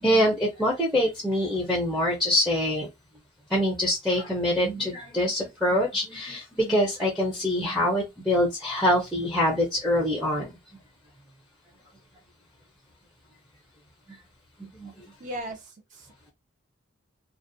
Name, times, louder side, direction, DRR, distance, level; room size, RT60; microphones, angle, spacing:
voice 1, 0.0-2.9 3.5-10.5 14.6-15.1, left 1 dB, ahead, 0.5 m, -25 dB
voice 2, 15.2-16.3, right 1 dB, 40° right, 0.6 m, -38 dB
2.4 x 2.1 x 2.6 m
head